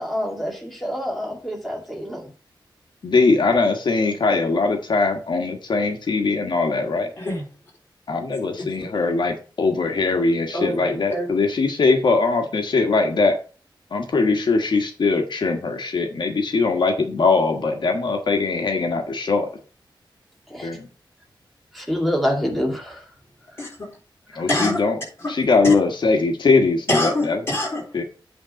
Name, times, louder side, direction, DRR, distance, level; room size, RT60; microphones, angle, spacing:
voice 1, 0.0-2.3 20.5-20.7 21.7-23.0, equal, ahead, 2.2 m, -26 dB
voice 2, 3.0-7.1 8.1-13.3 13.9-19.5 20.6-20.9 24.3-25.0 25.3-27.4 27.9-28.0, left 3 dB, 60° left, 1.4 m, -21 dB
voice 3, 10.5-11.3 23.6-23.9 24.5-24.8 25.2-25.3 25.6-25.7 26.9-27.8, left 1 dB, 30° left, 3.6 m, -25 dB
8.6 x 3.7 x 6.4 m
wide cardioid pair, 160°, 9 cm